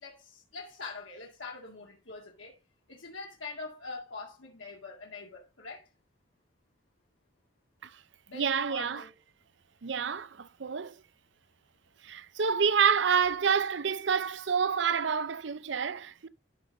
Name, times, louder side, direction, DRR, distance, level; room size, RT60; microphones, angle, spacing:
voice 1, 0.0-2.6 2.9-5.9 8.3-9.1, left 3 dB, 90° left, 2.0 m, -44 dB
voice 2, 8.3-9.0 9.8-11.0 12.0-16.3, right 6 dB, 70° right, 0.6 m, -28 dB
12.0 x 5.1 x 3.9 m
head